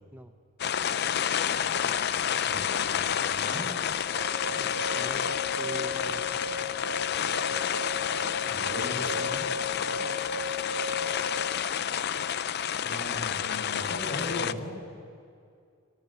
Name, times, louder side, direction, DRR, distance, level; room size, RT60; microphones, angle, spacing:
sound 1, 0.6-14.5, left 8 dB, 50° left, 0.5 m, -29 dB
voice 1, 2.4-3.7 8.5-9.5 12.8-14.9, left 1 dB, 70° left, -1 dB, 8.0 m, -38 dB
sound 2, 4.2-11.6, left 2 dB, 90° left, 1.7 m, -36 dB
voice 2, 4.6-6.4 10.0-10.2, equal, 10° right, 6 dB, 0.8 m, -44 dB
24.5 x 14.0 x 9.3 m, 2.3 s
head